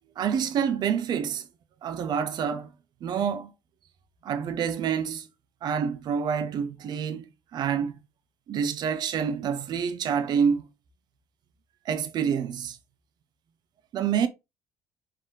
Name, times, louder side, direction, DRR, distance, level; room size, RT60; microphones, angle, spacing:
voice 1, 0.2-1.5 1.8-2.7 3.0-3.5 4.2-5.3 5.6-7.2 7.5-7.9 8.5-10.7 11.8-12.8 13.9-14.3, right 7 dB, 55° right, 0.9 m, -27 dB
5.7 x 3.2 x 2.9 m
hypercardioid pair, 55°, 9 cm